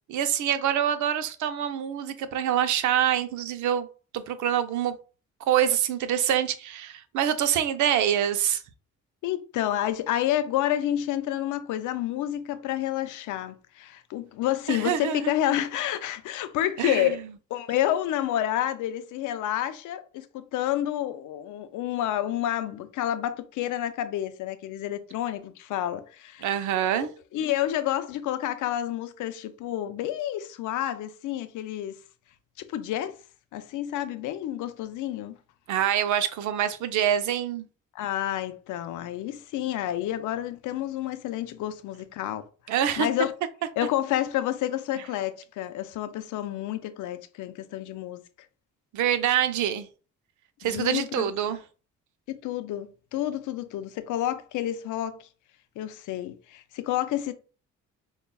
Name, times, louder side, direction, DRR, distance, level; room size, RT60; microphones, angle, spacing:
voice 1, 0.1-3.9 4.1-5.0 5.5-8.6 14.7-15.3 16.8-17.2 26.4-27.1 35.7-37.7 42.7-43.1 48.9-49.9 50.6-51.6, right 10 dB, 75° right, 0.5 m, -25 dB
voice 2, 9.2-17.2 17.5-26.5 27.3-32.0 32.6-33.2 33.5-35.4 37.9-42.5 42.8-43.3 43.8-48.2 50.6-51.6 52.3-55.2 55.8-57.3, left 12 dB, 80° left, 0.5 m, -29 dB
5.2 x 2.3 x 2.3 m
cardioid pair, 90°, 30 cm